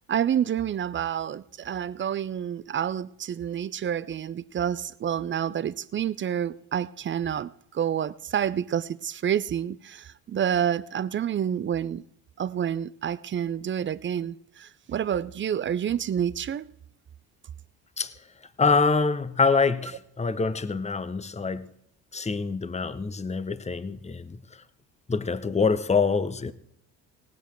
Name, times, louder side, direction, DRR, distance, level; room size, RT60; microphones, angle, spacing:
voice 1, 0.1-12.0 12.4-16.7, right 9 dB, 25° right, 0.4 m, -28 dB
voice 2, 18.6-21.7 22.1-24.4 25.1-26.5, left 4 dB, 15° left, 0.8 m, -25 dB
18.5 x 8.6 x 4.6 m
hypercardioid pair, 55°, 48 cm